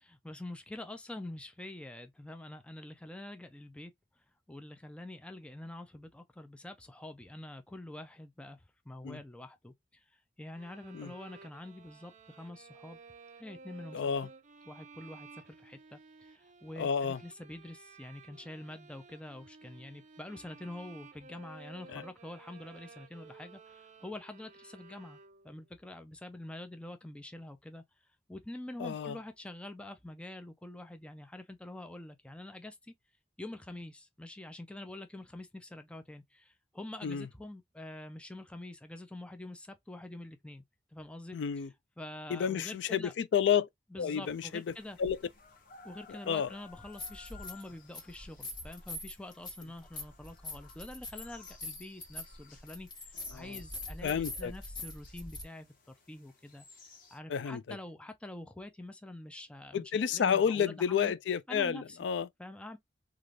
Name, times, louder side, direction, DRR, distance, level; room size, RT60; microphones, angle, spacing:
voice 1, 0.2-3.9 4.5-8.6 8.9-9.7 10.4-12.1 12.4-13.0 13.4-14.3 14.7-15.3 15.6-16.0 16.6-23.6 24.0-25.2 25.5-27.8 28.3-32.7 33.4-36.2 36.7-40.6 40.9-41.4 42.0-43.1 43.9-45.0 45.9-52.9 53.3-55.7 56.1-56.6 57.1-61.1 61.5-62.0 62.4-62.8, left 1 dB, 5° left, 0.4 m, -46 dB
sound 1, 10.5-25.7, right 4 dB, 45° right, 0.5 m, -55 dB
voice 2, 13.9-14.3 16.8-17.2 21.9-22.0 28.8-29.2 37.0-37.3 41.3-41.7 42.3-43.7 44.0-44.6 45.0-45.2 46.3-46.5 53.3-53.6 54.0-54.5 57.3-57.6 59.7-62.3, left 7 dB, 75° left, 0.3 m, -30 dB
sound 2, 44.2-57.2, left 5 dB, 50° left, 1.1 m, -58 dB
sound 3, 45.0-45.2 46.7-47.7 47.9-55.4, left 2 dB, 25° left, 1.2 m, -44 dB
3.2 x 2.4 x 2.4 m
head